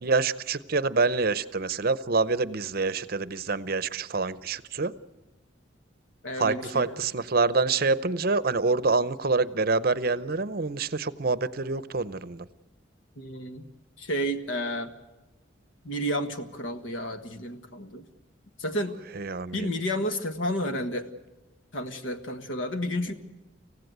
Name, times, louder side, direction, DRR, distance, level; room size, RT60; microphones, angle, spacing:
voice 1, 0.0-4.9 6.4-12.4 19.1-19.7, right 3 dB, 50° right, 16 dB, 0.7 m, -26 dB
voice 2, 6.2-7.0 13.2-13.7 14.0-14.9 15.9-18.1 18.6-19.0 19.5-21.1 21.7-23.1, equal, 85° left, 8 dB, 1.6 m, -31 dB
25.5 x 16.0 x 8.0 m, 1.1 s
head